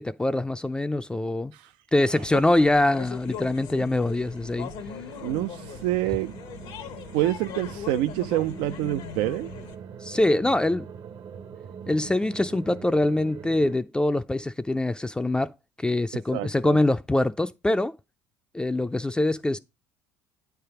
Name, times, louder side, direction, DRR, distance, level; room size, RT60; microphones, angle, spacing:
voice 1, 0.0-1.5 1.9-4.7 10.0-10.9 11.9-15.5 15.8-17.9 18.5-19.6, left 1 dB, 10° left, 0.4 m, -24 dB
sound 1, 2.2-9.8, left 9 dB, 70° left, 0.9 m, -40 dB
sound 2, 3.5-13.8, right 7 dB, 55° right, 0.8 m, -43 dB
voice 2, 5.2-6.3 7.1-9.5 16.1-16.8, right 15 dB, 80° right, 0.4 m, -27 dB
9.0 x 3.4 x 5.7 m
supercardioid pair, 90°, 9 cm